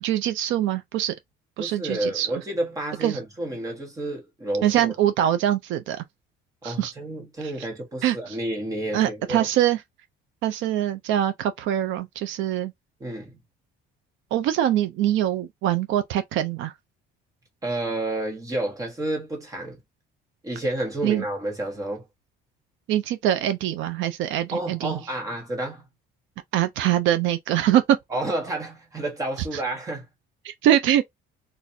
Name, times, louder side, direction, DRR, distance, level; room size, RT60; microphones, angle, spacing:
voice 1, 0.0-1.1 1.6-2.3 3.0-3.2 4.6-6.0 6.6-6.9 7.4-7.5 8.0-8.4 8.9-9.8 10.4-12.7 14.3-16.7 21.0-21.2 22.9-25.0 26.5-27.8 29.5-29.6 30.4-31.0, right 11 dB, 70° right, 0.6 m, -23 dB
voice 2, 1.6-4.9 6.6-9.5 13.0-13.4 17.6-19.8 20.4-22.0 24.5-25.8 28.1-30.1, right 1 dB, 15° right, 1.4 m, -30 dB
4.0 x 2.6 x 2.7 m
cardioid pair, 170°, 20 cm